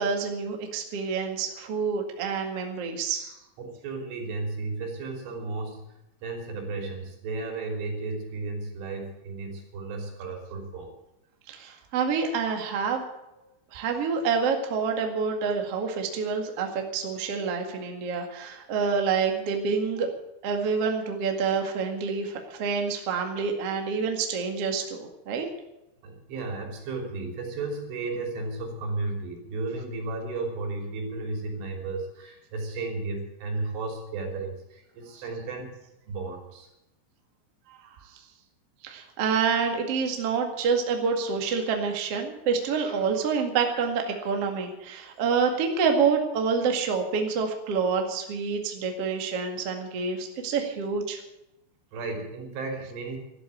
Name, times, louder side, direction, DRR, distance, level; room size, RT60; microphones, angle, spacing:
voice 1, 0.0-3.3 11.5-13.0 13.7-20.1 20.4-25.5 37.7-37.8 38.8-51.2, right 5 dB, 50° right, 3 dB, 1.9 m, -27 dB
voice 2, 3.6-10.9 26.0-35.7 36.1-36.7 51.9-53.2, right 3 dB, 75° right, 2 dB, 5.7 m, -34 dB
13.5 x 12.0 x 8.2 m, 0.88 s
omnidirectional pair, 5.8 m